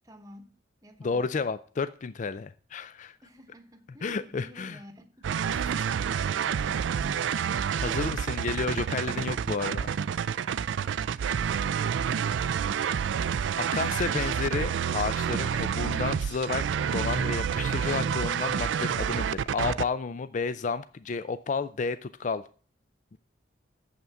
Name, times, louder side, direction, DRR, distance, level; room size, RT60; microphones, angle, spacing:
voice 1, 0.0-0.6 0.8-1.3 3.2-5.3 10.8-12.4 13.7-13.9, equal, 20° right, 1.0 m, -52 dB
voice 2, 1.0-3.2 4.0-4.8 5.7-5.9 7.7-9.9 13.6-16.6 16.9-22.4 23.1-23.2, left 4 dB, 40° left, 0.4 m, -31 dB
sound 1, 5.2-19.8, right 7 dB, 75° right, 0.3 m, -28 dB
7.8 x 5.8 x 7.0 m
head